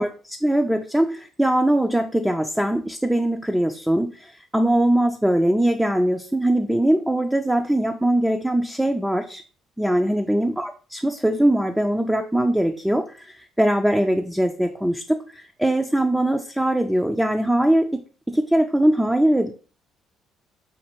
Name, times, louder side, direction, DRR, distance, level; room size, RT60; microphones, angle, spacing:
voice 1, 0.0-9.4 9.8-18.0 18.3-19.5, right 1 dB, 5° right, 5 dB, 0.3 m, -21 dB
5.2 x 2.4 x 2.9 m, 0.39 s
cardioid pair, 100°, 0 cm